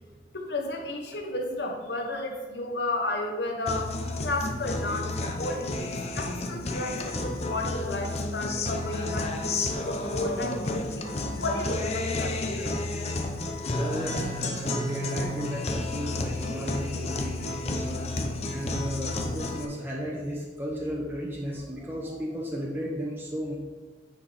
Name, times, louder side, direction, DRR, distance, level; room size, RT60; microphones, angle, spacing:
voice 1, 0.3-3.9 4.2-5.9 6.1-12.8, left 2 dB, 65° left, 2 dB, 1.2 m, -33 dB
Guitar, 3.7-19.6, left 2 dB, 35° left, 0.7 m, -31 dB
voice 2, 13.7-18.0 18.5-23.6, equal, 10° right, -4 dB, 1.0 m, -34 dB
9.8 x 4.6 x 4.2 m, 1.4 s
head